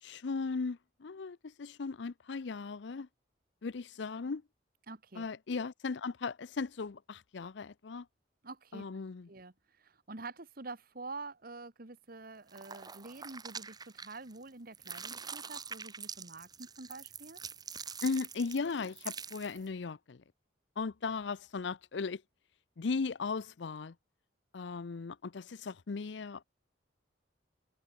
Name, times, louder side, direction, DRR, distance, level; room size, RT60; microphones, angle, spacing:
voice 1, 0.0-3.1 3.6-4.4 5.2-8.1 8.7-9.3 18.0-20.2 20.8-22.2 22.8-23.9 24.5-26.4, left 4 dB, 65° left, 0.5 m, -37 dB
voice 2, 4.9-5.3 8.4-8.8 9.3-17.4, right 3 dB, 50° right, 1.6 m, -47 dB
sound 1, 12.5-14.4 14.7-19.7, right 6 dB, 20° right, 1.9 m, -45 dB
head